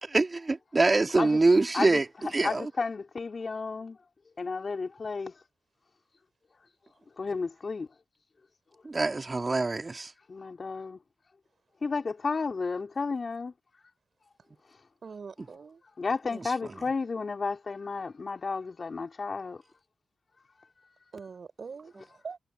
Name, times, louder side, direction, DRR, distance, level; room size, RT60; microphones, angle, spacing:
voice 1, 0.0-2.7 8.8-10.1 16.3-16.8, right 3 dB, 35° right, 2.7 m, -25 dB
voice 2, 2.4-4.0 4.4-5.3 7.2-7.9 10.3-11.0 11.8-13.5 16.0-19.6, left 4 dB, 50° left, 4.5 m, -32 dB
voice 3, 15.0-15.8 21.1-22.4, right 5 dB, 60° right, 6.3 m, -43 dB
supercardioid pair, 45°, 0 cm